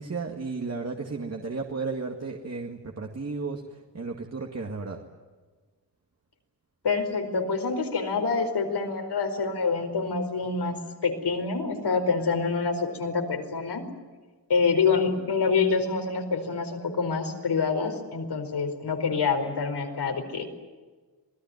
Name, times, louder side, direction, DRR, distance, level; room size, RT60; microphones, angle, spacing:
voice 1, 0.0-5.0, right 4 dB, 40° right, 2 dB, 2.1 m, -34 dB
voice 2, 6.8-13.8 14.5-20.6, left 4 dB, 75° left, 6 dB, 4.7 m, -26 dB
27.0 x 20.0 x 9.5 m, 1.4 s
wide cardioid pair, 120°, 40 cm